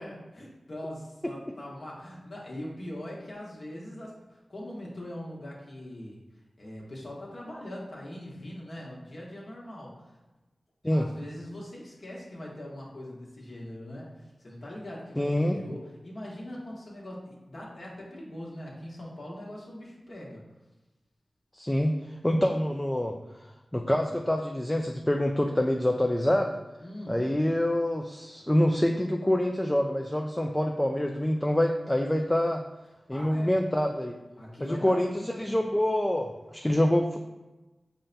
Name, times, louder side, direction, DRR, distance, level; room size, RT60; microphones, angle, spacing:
voice 1, 0.0-6.2 6.6-10.1 10.9-20.4 26.8-27.2 33.1-33.5 34.4-35.6, left 1 dB, 55° left, -4 dB, 1.1 m, -41 dB
voice 2, 15.2-15.6 21.5-21.9 22.2-23.1 23.7-26.5 27.1-32.6 33.1-34.1 34.6-37.2, left 1 dB, 10° left, 2 dB, 0.3 m, -26 dB
5.5 x 2.2 x 3.9 m, 1.1 s
wide cardioid pair, 85°, 0 cm